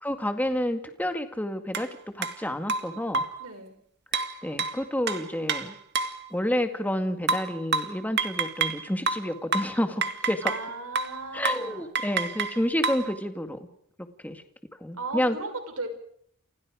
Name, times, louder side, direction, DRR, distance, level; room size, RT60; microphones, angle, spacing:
voice 1, 0.0-1.9 2.1-3.2 4.4-5.8 6.3-10.4 11.3-13.6 14.2-14.4 14.8-15.4, left 1 dB, 5° left, 7 dB, 2.0 m, -29 dB
sound 1, 1.7-1.9 2.2-2.4 2.7-3.4 4.1-6.2 7.3-8.8 9.1-10.7 11.0-11.2 11.4-11.7 12.0-13.1, right 4 dB, 50° right, 2.0 m, -28 dB
voice 2, 3.4-3.7 10.4-11.9 15.0-15.9, right 3 dB, 90° right, 7 dB, 5.9 m, -36 dB
29.5 x 28.5 x 5.1 m, 0.69 s
head